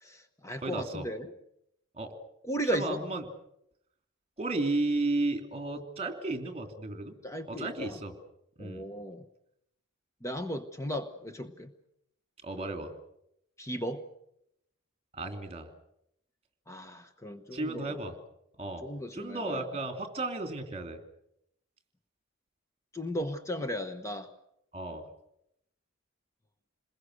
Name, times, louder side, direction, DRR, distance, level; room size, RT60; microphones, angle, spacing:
voice 1, 0.0-1.3 2.5-3.0 7.2-8.0 8.6-9.2 10.2-11.7 13.6-14.1 16.7-18.0 18.8-19.7 22.9-24.3, equal, 15° left, 8 dB, 1.1 m, -36 dB
voice 2, 0.6-1.1 1.9-2.1 2.7-3.2 4.4-7.1 7.5-8.1 8.6-8.9 12.4-12.9 15.1-15.7 17.5-18.1 18.6-18.8 19.1-21.0 24.7-25.1, right 2 dB, 30° right, 7 dB, 3.0 m, -33 dB
28.0 x 21.5 x 6.6 m, 0.78 s
head